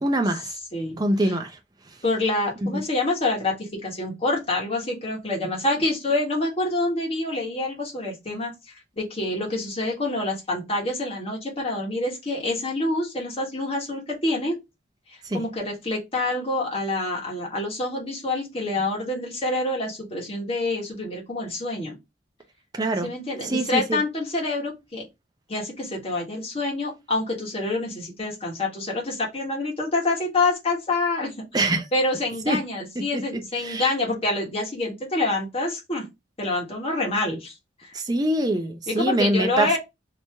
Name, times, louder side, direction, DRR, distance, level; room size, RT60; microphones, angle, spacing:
voice 1, 0.0-0.5 1.0-1.6 2.6-2.8 15.3-15.4 22.7-23.1 23.4-24.0 31.5-31.9 32.5-32.6 33.1-33.2 33.6-33.9 37.9-39.7, right 1 dB, 20° right, 0.5 m, -24 dB
voice 2, 0.7-1.3 2.0-14.6 15.1-22.0 23.0-25.1 25.5-36.1 36.4-38.0 38.9-39.8, left 2 dB, 30° left, 1.4 m, -27 dB
2.9 x 2.9 x 3.3 m
head